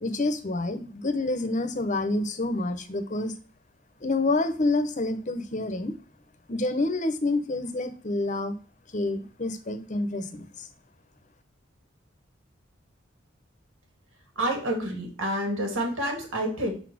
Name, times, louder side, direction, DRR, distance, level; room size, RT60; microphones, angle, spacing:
voice 1, 0.0-3.3 4.0-6.0 6.5-8.6 8.9-10.7, left 2 dB, 40° left, 9 dB, 0.8 m, -28 dB
voice 2, 14.4-16.7, right 1 dB, 85° right, 2 dB, 2.3 m, -28 dB
5.5 x 4.1 x 6.0 m, 0.40 s
head